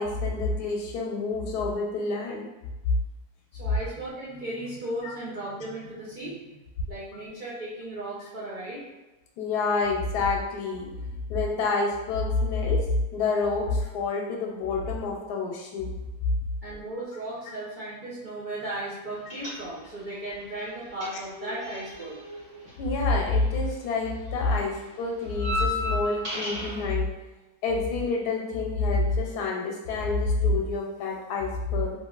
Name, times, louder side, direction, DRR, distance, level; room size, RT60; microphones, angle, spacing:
voice 1, 0.0-2.5 5.0-5.1 9.4-10.9 11.3-15.9 22.8-27.1 27.6-31.9, left 3 dB, 85° left, 0 dB, 1.1 m, -27 dB
voice 2, 3.5-6.6 6.9-8.8 16.6-22.2 24.6-24.7, right 1 dB, 80° right, -8 dB, 0.4 m, -36 dB
sound 1, 19.3-20.1 20.3-23.7 24.0-26.9, left 2 dB, 30° right, 1.4 m, -34 dB
3.2 x 2.5 x 2.3 m, 1.1 s
omnidirectional pair, 1.7 m